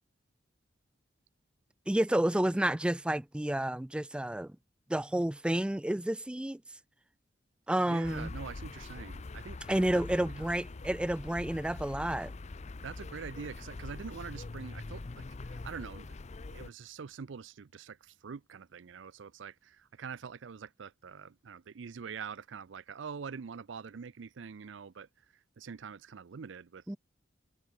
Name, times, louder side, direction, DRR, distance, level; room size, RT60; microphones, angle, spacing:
voice 1, 1.9-4.6 4.9-6.6 7.7-8.3 9.7-12.3 26.9-27.0, right 1 dB, 5° right, 0.3 m, -30 dB
voice 2, 7.9-9.6 10.2-10.5 12.8-16.1 16.5-25.1 25.6-27.0, right 6 dB, 80° right, 0.5 m, -44 dB
sound 1, 8.0-16.7, left 3 dB, 40° left, 0.6 m, -43 dB
head